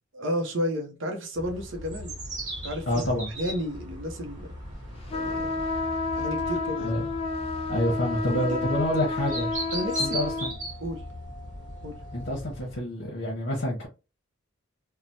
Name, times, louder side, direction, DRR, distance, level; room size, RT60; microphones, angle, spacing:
voice 1, 0.1-2.2 2.6-3.0 3.4-4.5 5.1-5.7 6.2-7.0 8.2-8.6 9.7-10.2 10.8-11.0 11.8-12.0, equal, 65° right, 0.6 m, -32 dB
sound 1, 1.3-12.8, equal, 40° right, 1.0 m, -38 dB
voice 2, 2.9-3.3 6.8-7.1 7.7-9.5 10.0-10.5 12.1-13.9, left 1 dB, 55° left, 0.8 m, -28 dB
sound 2, 5.1-10.5, left 3 dB, 30° left, 0.5 m, -30 dB
3.1 x 2.1 x 2.6 m
head